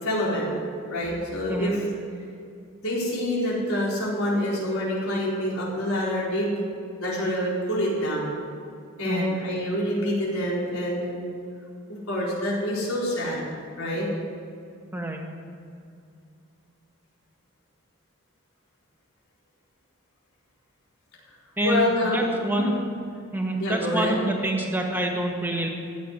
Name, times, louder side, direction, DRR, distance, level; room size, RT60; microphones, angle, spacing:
voice 1, 0.0-0.6 0.9-1.8 2.8-6.5 7.0-8.4 9.0-11.2 11.9-13.4 13.8-14.1 21.6-22.7 23.6-24.1, left 1 dB, 90° left, -5 dB, 4.2 m, -26 dB
voice 2, 21.6-22.7 23.3-25.7, right 1 dB, 10° right, 1 dB, 1.6 m, -27 dB
15.5 x 7.0 x 9.8 m, 2.4 s
head